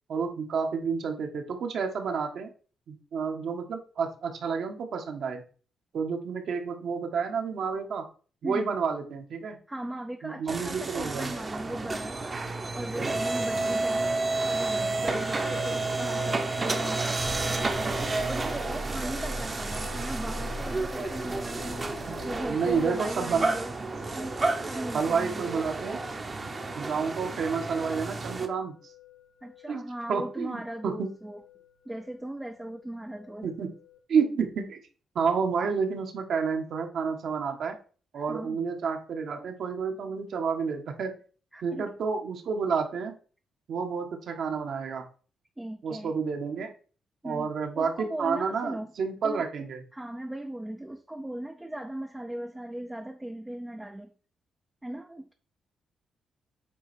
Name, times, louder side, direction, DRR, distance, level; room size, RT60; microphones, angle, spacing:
voice 1, 0.1-2.5 2.9-5.4 5.9-8.1 8.4-9.6 10.2-11.3 22.5-23.4 24.9-26.0 26.7-28.8 29.7-29.8 30.1-31.1 33.4-33.7 34.1-34.8 35.1-37.8 38.1-41.1 41.6-43.2 43.7-45.0 45.8-46.7 47.2-49.8, right 5 dB, 60° right, 1.5 m, -30 dB
voice 2, 9.7-12.4 12.7-17.9 18.3-21.9 22.2-23.7 24.1-25.7 29.4-31.4 31.9-33.5 38.2-38.6 41.5-41.9 45.6-46.1 47.2-47.5 47.8-48.9 49.2-49.5 49.9-54.1 54.8-55.3, right 1 dB, 10° right, 0.6 m, -38 dB
sound 1, 10.5-28.5, right 3 dB, 25° right, 0.9 m, -31 dB
Musical instrument, 15.1-34.0, left 10 dB, 80° left, 2.0 m, -48 dB
8.3 x 3.2 x 6.1 m
cardioid pair, 135°, 0 cm